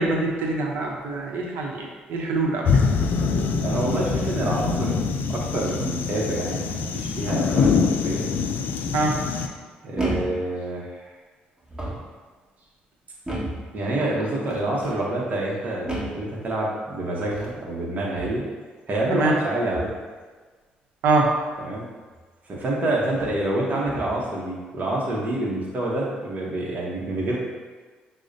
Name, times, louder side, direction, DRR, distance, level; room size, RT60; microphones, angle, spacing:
voice 1, 0.0-2.7 8.9-9.2 19.1-19.3 21.0-21.3, right 3 dB, 80° right, 0 dB, 0.6 m, -24 dB
sound 1, 2.7-9.5, left 5 dB, 65° left, 0.3 m, -24 dB
voice 2, 3.6-4.9 5.3-8.3 9.8-11.1 13.7-18.4 18.9-19.9 21.6-21.8 22.5-27.4, right 1 dB, 45° right, -4 dB, 0.8 m, -27 dB
sound 2, 7.0-7.7 9.2-9.6 10.0-10.5 11.6-12.2 13.2-13.7 14.5-15.0 15.9-16.3 17.2-17.6 18.1-18.5 19.7-20.0 22.1-22.2 23.1-23.4 23.8-24.2, right 1 dB, 15° right, 1.4 m, -33 dB
6.1 x 2.1 x 2.6 m, 1.4 s
supercardioid pair, 70°, 4 cm